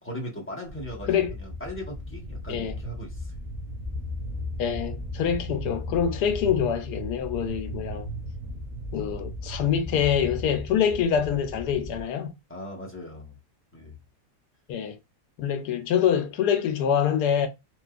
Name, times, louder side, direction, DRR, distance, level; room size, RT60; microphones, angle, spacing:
voice 1, 0.0-3.3 12.5-13.4 13.7-14.0, equal, 10° left, 0.9 m, -38 dB
sound 1, 0.6-12.0, left 1 dB, 30° right, 0.7 m, -36 dB
voice 2, 4.6-8.1 8.9-12.3 14.7-15.0 15.4-17.5, left 8 dB, 75° left, 1.2 m, -25 dB
3.0 x 2.9 x 2.3 m
omnidirectional pair, 1.8 m